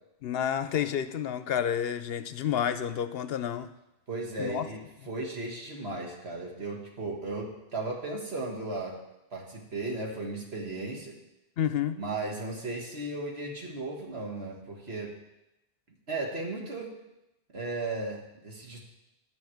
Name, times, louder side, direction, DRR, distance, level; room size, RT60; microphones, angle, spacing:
voice 1, 0.2-3.7 4.4-4.7 11.6-12.0, left 9 dB, 70° left, 12 dB, 0.8 m, -30 dB
voice 2, 4.1-9.0 9.3-11.2 12.0-15.2 16.1-17.0 17.5-18.9, right 2 dB, 70° right, -1 dB, 2.1 m, -36 dB
11.0 x 5.4 x 7.9 m, 0.92 s
omnidirectional pair, 1.1 m